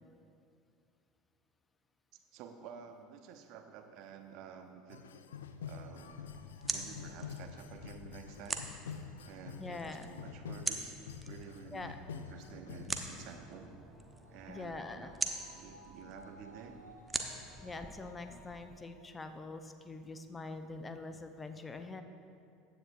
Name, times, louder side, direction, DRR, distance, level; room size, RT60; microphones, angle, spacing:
voice 1, 2.1-5.0 5.6-6.2 6.7-8.7 9.2-11.0 11.2-13.7 14.3-15.1 15.6-16.8, right 7 dB, 50° right, 7 dB, 0.8 m, -51 dB
sound 1, 4.9-13.3, left 7 dB, 70° left, 0.4 m, -47 dB
sound 2, 6.0-18.8, right 3 dB, 15° right, 0.9 m, -44 dB
voice 2, 9.6-10.1 11.7-12.0 14.5-15.1 17.6-22.0, left 3 dB, 15° left, 8 dB, 0.6 m, -44 dB
sound 3, 13.3-19.9 20.3-20.4, left 1 dB, 85° left, 1.0 m, -58 dB
15.0 x 9.3 x 2.6 m, 2.5 s
figure-of-eight pair, 70°, 0 cm